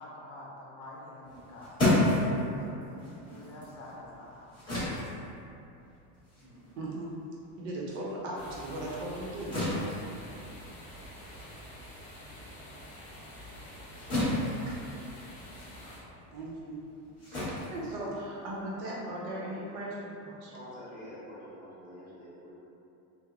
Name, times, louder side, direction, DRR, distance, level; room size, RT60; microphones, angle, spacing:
voice 1, 0.0-1.9 2.6-4.9 6.4-6.7 8.8-10.0, left 1 dB, 70° left, -4 dB, 0.8 m, -48 dB
sound 1, 1.2-8.0 8.4-18.6, left 1 dB, 10° left, 0.9 m, -33 dB
voice 2, 6.8-7.1 7.6-9.6 14.7-14.8 16.3-16.8 17.3-20.5, right 1 dB, 60° right, -5 dB, 0.7 m, -38 dB
sound 2, 8.4-16.0, equal, 25° left, 0.4 m, -47 dB
voice 3, 20.5-22.5, equal, 20° right, -10 dB, 0.6 m, -46 dB
2.9 x 2.1 x 2.4 m, 2.7 s
cardioid pair, 155°, 43 cm